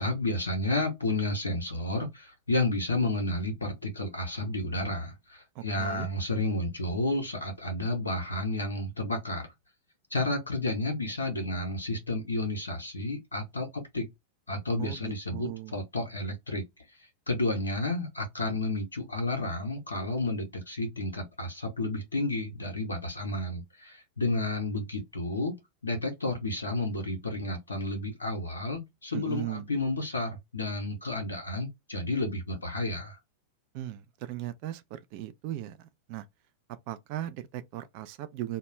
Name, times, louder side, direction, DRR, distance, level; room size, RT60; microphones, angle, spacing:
voice 1, 0.0-9.5 10.1-14.1 14.5-16.7 17.3-25.6 25.8-33.2, left 2 dB, 75° left, 0.6 m, -31 dB
voice 2, 5.6-6.1 14.8-15.8 29.1-29.7 33.7-36.3 36.9-38.6, right 13 dB, 45° right, 0.3 m, -38 dB
2.3 x 2.0 x 2.9 m
figure-of-eight pair, 90°, 0 cm